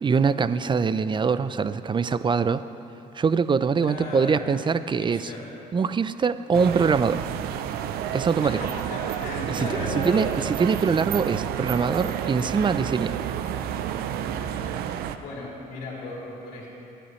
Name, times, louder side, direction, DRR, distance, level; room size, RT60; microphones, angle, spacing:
voice 1, 0.0-2.6 3.1-5.3 5.7-7.2 8.1-8.6 9.5-9.7 9.9-13.2, right 5 dB, 30° right, 14 dB, 0.5 m, -23 dB
voice 2, 3.9-4.4 5.0-5.5 8.4-10.3 14.4-14.7 15.2-16.7, left 2 dB, 65° left, -5 dB, 2.9 m, -36 dB
sound 1, 6.5-15.2, right 10 dB, 80° right, 0.6 m, -30 dB
21.0 x 10.0 x 3.2 m, 2.8 s
supercardioid pair, 75°, 16 cm